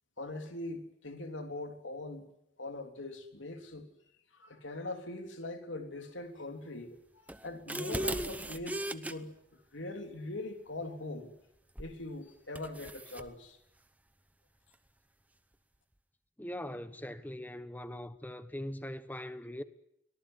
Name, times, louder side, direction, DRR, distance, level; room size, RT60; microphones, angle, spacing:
voice 1, 0.2-3.9 4.3-11.3 11.8-13.6, left 2 dB, 80° left, 3.5 m, -42 dB
sound 1, 7.3-9.1 11.8-12.0 12.5-13.3, right 1 dB, 10° right, 0.9 m, -37 dB
voice 2, 16.4-19.6, left 1 dB, 10° left, 1.2 m, -41 dB
24.0 x 18.5 x 9.8 m
head